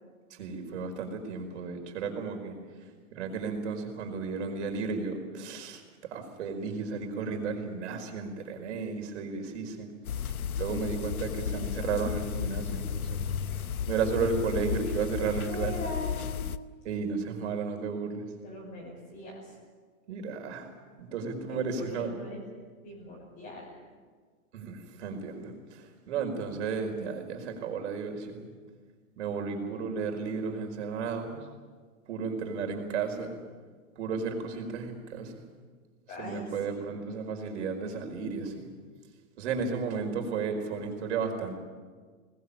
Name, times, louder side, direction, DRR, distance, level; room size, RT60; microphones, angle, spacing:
voice 1, 0.3-2.6 3.1-9.9 10.6-13.2 13.5-15.7 16.8-18.3 20.1-20.7 21.0-22.1 24.5-28.5 29.2-31.5 32.1-33.4 33.9-35.3 36.2-38.7 39.4-41.5, right 5 dB, 55° right, 4 dB, 5.0 m, -33 dB
sound 1, 10.0-16.6, left 8 dB, 90° left, 1.0 m, -33 dB
voice 2, 15.4-16.3 18.4-19.6 21.5-22.4 22.8-23.7 36.1-37.0, left 1 dB, 25° left, -5 dB, 5.9 m, -41 dB
21.0 x 20.0 x 8.7 m, 1.5 s
hypercardioid pair, 150°, 42 cm